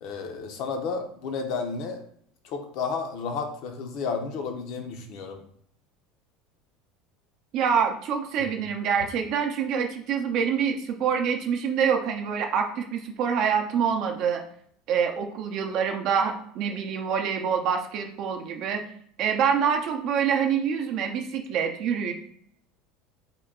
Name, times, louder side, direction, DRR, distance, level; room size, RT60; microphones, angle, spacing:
voice 1, 0.0-2.0 2.4-5.4 8.4-8.5, left 5 dB, 60° left, 5 dB, 0.6 m, -32 dB
voice 2, 7.5-14.4 14.9-18.8 19.2-22.1, right 7 dB, 55° right, 4 dB, 0.5 m, -26 dB
3.7 x 2.2 x 3.6 m, 0.66 s
supercardioid pair, 125°, 0 cm